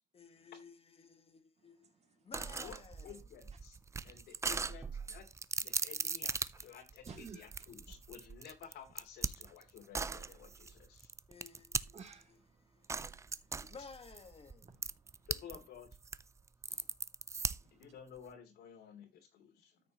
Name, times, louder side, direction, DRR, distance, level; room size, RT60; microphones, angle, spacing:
voice 1, 0.1-3.2 11.3-12.0 12.3-14.7, left 5 dB, 35° left, 1.8 m, -56 dB
sound 1, 2.3-12.2 12.9-15.6 15.9-17.8, right 4 dB, 15° right, 0.4 m, -39 dB
voice 2, 3.0-3.8 4.0-5.3 5.6-11.1 15.3-15.9 16.7-16.8 17.7-19.8, left 8 dB, 75° left, 2.9 m, -53 dB
voice 3, 7.1-7.5 11.9-13.5 14.6-15.3 17.3-17.8, right 5 dB, 40° right, 2.6 m, -55 dB
13.0 x 6.4 x 3.0 m
cardioid pair, 110°, 17 cm